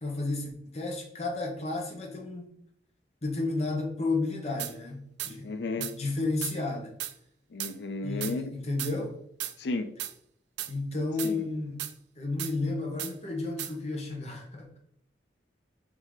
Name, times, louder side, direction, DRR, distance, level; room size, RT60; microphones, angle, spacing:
voice 1, 0.0-2.5 3.2-5.5 5.8-7.0 8.0-9.1 10.7-11.8 12.2-14.8, left 3 dB, 35° left, 1 dB, 0.9 m, -32 dB
sound 1, 4.6-4.7 5.2-5.3 5.8-5.9 6.4-6.6 7.0-7.1 7.6-7.7 8.2-8.3 8.8-8.9 9.4-9.6 10.0-10.1 10.6-10.7 11.2-11.3 11.8-11.9 12.4-12.5 13.0-13.1 13.6-13.7, right 12 dB, 80° right, 0.4 m, -35 dB
voice 2, 5.4-6.0 7.5-8.5 9.6-9.9 11.2-11.4, left 3 dB, 75° left, 9 dB, 0.4 m, -33 dB
3.6 x 2.7 x 4.7 m, 0.70 s
head